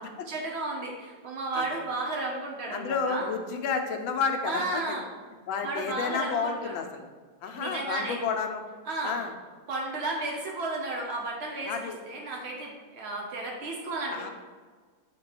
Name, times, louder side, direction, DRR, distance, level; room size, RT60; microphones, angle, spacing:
voice 1, 0.0-3.3 4.4-5.1 5.6-6.7 7.6-8.2 8.9-9.1 9.7-14.3, right 2 dB, 65° right, -1 dB, 0.6 m, -33 dB
voice 2, 2.7-5.0 5.5-7.0 7.4-8.6 9.0-9.3 11.7-12.0 14.1-14.3, left 5 dB, 85° left, 5 dB, 1.4 m, -30 dB
7.4 x 3.0 x 4.8 m, 1.5 s
omnidirectional pair, 2.1 m